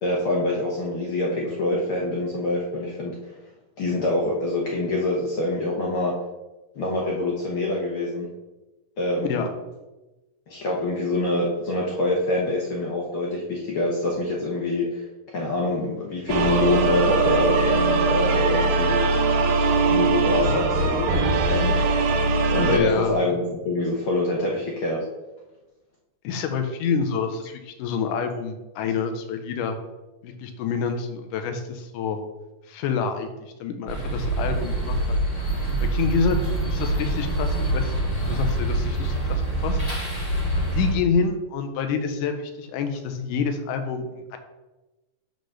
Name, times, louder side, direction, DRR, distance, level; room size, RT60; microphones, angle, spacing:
voice 1, 0.0-3.2 3.8-6.1 6.7-8.3 9.0-9.5 10.5-15.0 15.3-19.0 19.8-22.2 22.5-25.0, left 2 dB, 65° left, -3 dB, 1.4 m, -25 dB
sound 1, 16.3-22.8, right 3 dB, 75° right, 2.3 m, -21 dB
voice 2, 22.7-23.2 26.2-29.8 30.2-32.2 32.7-35.2 35.5-35.6 35.9-36.4 36.7-39.8 40.1-40.4 40.7-44.4, left 5 dB, 85° left, 6 dB, 2.3 m, -27 dB
sound 2, 33.9-40.9, right 1 dB, 20° left, 1.0 m, -25 dB
6.6 x 4.0 x 6.3 m, 1.1 s
omnidirectional pair, 3.6 m